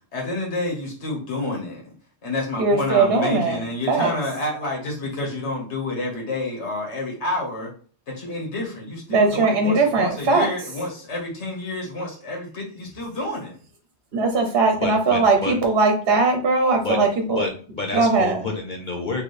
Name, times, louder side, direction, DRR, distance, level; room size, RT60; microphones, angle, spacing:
voice 1, 0.1-1.8 2.2-7.7 8.1-13.5, left 2 dB, 80° left, 1.6 m, -29 dB
voice 2, 2.6-3.6 3.9-4.1 9.1-10.5 14.1-17.4 17.9-18.4, right 3 dB, 65° right, 1.0 m, -19 dB
voice 3, 14.7-15.6 16.8-19.2, left 3 dB, 50° left, 0.7 m, -29 dB
4.2 x 3.1 x 3.3 m
omnidirectional pair, 1.1 m